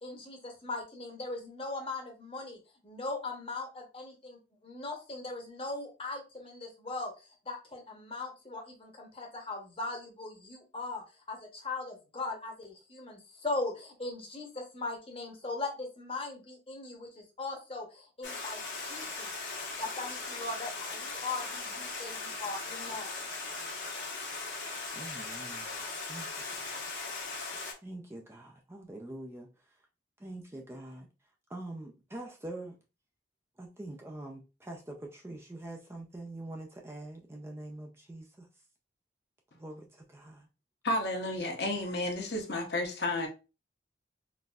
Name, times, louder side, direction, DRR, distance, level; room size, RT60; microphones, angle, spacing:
voice 1, 0.0-19.3 19.8-23.1, left 3 dB, 30° left, 0.9 m, -39 dB
Stream, 18.2-27.7, left 3 dB, 75° left, 1.1 m, -39 dB
voice 2, 24.9-25.8 26.1-26.8 27.8-29.5 30.2-31.1 31.5-32.7 33.6-38.5 39.6-40.5, right 1 dB, 15° right, 0.4 m, -44 dB
voice 3, 40.8-43.3, left 1 dB, 60° left, 0.8 m, -32 dB
3.9 x 2.6 x 2.3 m
head